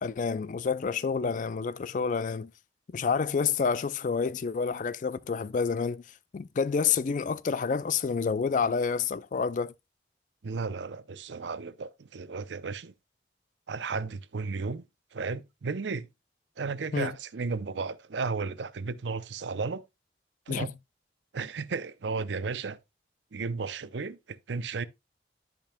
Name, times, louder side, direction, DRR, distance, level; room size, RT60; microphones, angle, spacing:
voice 1, 0.0-2.5 2.9-6.0 6.3-9.7 16.9-17.1 20.5-20.7, left 5 dB, 45° left, 0.4 m, -28 dB
voice 2, 10.4-12.9 13.7-14.8 15.1-16.1 16.6-19.8 20.5-20.7 21.3-22.8 23.3-24.8, right 4 dB, 85° right, 0.6 m, -34 dB
13.0 x 5.2 x 2.2 m
head